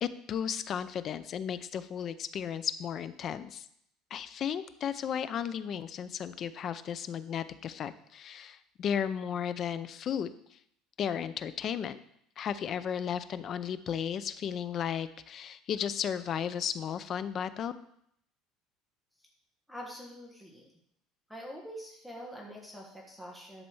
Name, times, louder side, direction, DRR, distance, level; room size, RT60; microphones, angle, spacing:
voice 1, 0.0-3.7 4.1-10.3 11.0-12.0 12.4-17.7, left 8 dB, 35° left, 13 dB, 0.5 m, -34 dB
voice 2, 19.7-20.7 21.3-23.6, equal, ahead, -2 dB, 1.4 m, -45 dB
11.0 x 4.2 x 7.0 m, 0.71 s
cardioid pair, 155°, 0 cm